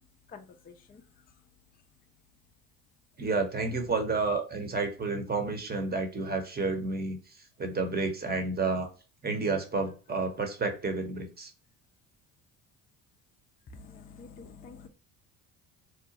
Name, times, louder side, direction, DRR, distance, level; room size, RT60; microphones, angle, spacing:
voice 1, 0.3-1.0 13.7-14.9, left 4 dB, 20° left, 0.4 m, -48 dB
voice 2, 3.2-7.2 7.6-8.9 9.2-11.5, right 3 dB, 20° right, 0.8 m, -30 dB
2.8 x 2.1 x 2.8 m
hypercardioid pair, 65°, 44 cm